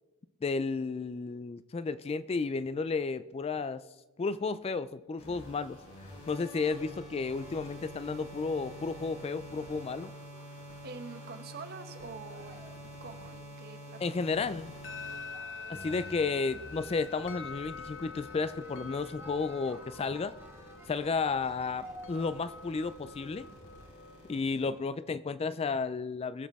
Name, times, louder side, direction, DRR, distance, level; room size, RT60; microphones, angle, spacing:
voice 1, 0.4-3.8 4.2-5.8 6.3-10.1 14.0-14.8 15.7-20.3 20.9-23.5 24.3-26.5, left 4 dB, 25° left, 14 dB, 0.3 m, -32 dB
sound 1, 5.2-24.7, equal, 85° left, 4.1 m, -48 dB
sound 2, 5.4-25.1, equal, 10° right, 1.7 m, -57 dB
voice 2, 10.8-14.1, right 4 dB, 45° right, 8 dB, 1.0 m, -46 dB
sound 3, 14.8-24.4, left 4 dB, 60° left, 0.8 m, -46 dB
20.5 x 7.1 x 3.5 m, 1.1 s
head